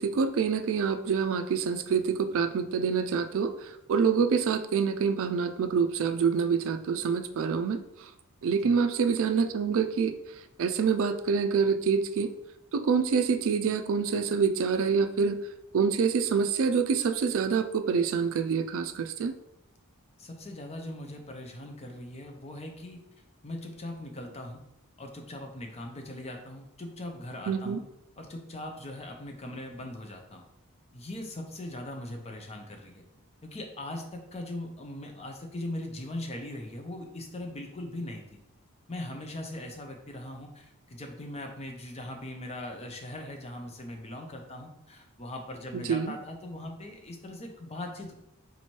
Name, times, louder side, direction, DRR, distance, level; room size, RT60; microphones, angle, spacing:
voice 1, 0.0-8.1 8.4-10.1 10.6-12.3 12.7-15.4 15.7-19.3 27.5-27.8 45.7-46.1, right 6 dB, 60° right, 9 dB, 0.4 m, -26 dB
voice 2, 20.2-23.0 23.4-24.6 25.0-27.8 28.2-30.4 30.9-33.0 33.4-38.4 38.9-48.1, left 1 dB, 30° left, 3 dB, 0.7 m, -40 dB
4.0 x 3.0 x 4.4 m, 0.82 s
head